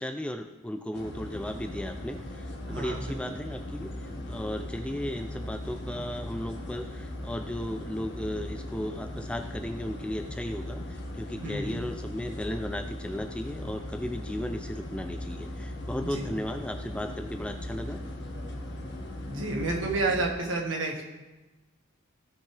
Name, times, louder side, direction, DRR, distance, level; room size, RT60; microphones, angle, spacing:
voice 1, 0.0-18.0, left 1 dB, 5° left, 7 dB, 0.3 m, -35 dB
sound 1, 0.9-20.3, left 1 dB, 55° left, 1.4 m, -39 dB
voice 2, 2.7-3.1 11.4-11.8 16.1-16.3 19.3-21.0, right 2 dB, 60° right, 0 dB, 1.7 m, -30 dB
16.0 x 5.9 x 3.4 m, 1.1 s
head